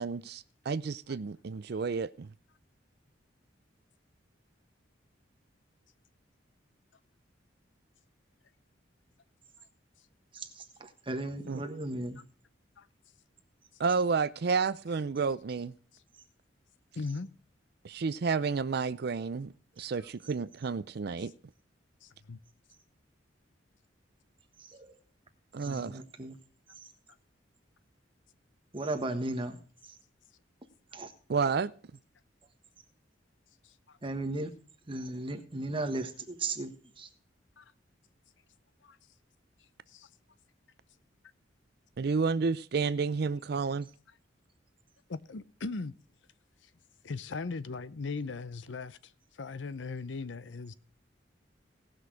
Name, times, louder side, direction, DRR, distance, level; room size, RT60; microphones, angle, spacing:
voice 1, 0.0-2.3 11.5-11.6 13.8-15.7 17.8-21.3 25.5-26.0 31.3-31.7 42.0-43.9, right 5 dB, 55° right, 0.5 m, -31 dB
voice 2, 10.3-12.2 19.8-19.9 24.6-24.9 25.6-26.4 26.7-26.9 28.7-30.0 30.9-31.1 34.0-34.5 34.9-37.1, right 2 dB, 30° right, 1.3 m, -36 dB
voice 3, 17.0-17.3 21.2-21.3 22.0-22.4 25.6-25.7 33.6-34.0 37.6-37.7 38.8-39.0 39.9-40.1 45.1-45.9 47.0-49.1 49.4-50.7, left 4 dB, 75° left, 0.7 m, -38 dB
17.5 x 6.2 x 4.8 m
head